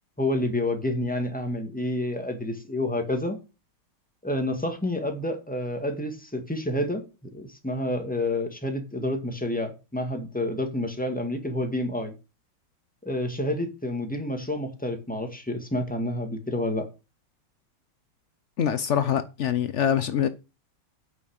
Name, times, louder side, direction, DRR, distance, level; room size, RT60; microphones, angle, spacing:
voice 1, 0.2-3.4 4.2-7.0 7.3-12.1 13.0-16.9, left 1 dB, 5° left, 1.8 m, -29 dB
voice 2, 18.6-20.3, left 9 dB, 90° left, 0.6 m, -24 dB
9.1 x 6.2 x 6.5 m
omnidirectional pair, 2.3 m